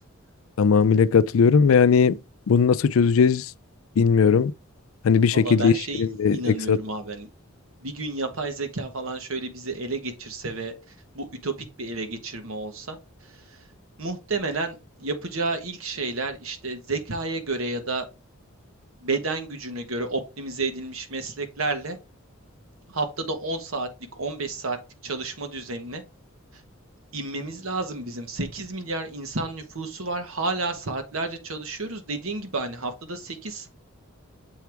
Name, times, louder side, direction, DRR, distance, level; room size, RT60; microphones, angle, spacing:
voice 1, 0.6-2.2 2.5-3.5 4.0-4.5 5.0-6.8, left 6 dB, 75° left, 0.4 m, -19 dB
voice 2, 5.3-7.3 7.8-10.7 11.1-13.0 13.5-13.6 14.0-18.0 19.0-22.0 22.9-24.8 25.0-26.0 27.1-33.7, right 3 dB, 75° right, 1.3 m, -31 dB
7.0 x 4.6 x 3.5 m
head